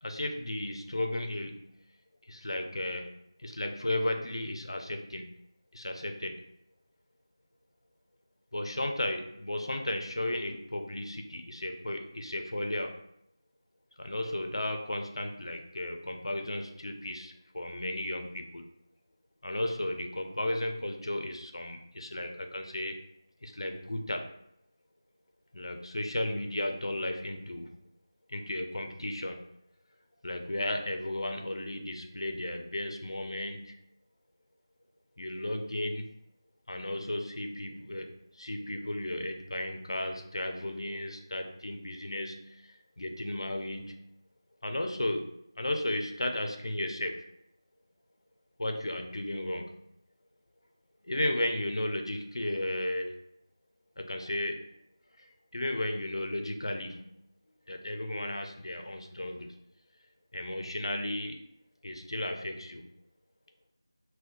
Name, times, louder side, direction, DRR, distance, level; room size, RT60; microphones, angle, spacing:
voice 1, 0.0-1.6 2.3-5.3 5.7-6.4 8.5-13.0 14.0-18.7 19.4-23.0 23.4-24.3 25.5-27.8 28.3-29.5 30.2-33.8 35.2-36.1 36.7-44.0 44.6-47.3 48.6-49.8 51.0-53.1 54.0-54.7 55.2-57.0 57.7-59.6 60.3-61.4 61.8-62.9, left 1 dB, 80° left, 4 dB, 0.4 m, -34 dB
2.5 x 2.2 x 3.7 m, 0.75 s
figure-of-eight pair, 175°, 3 cm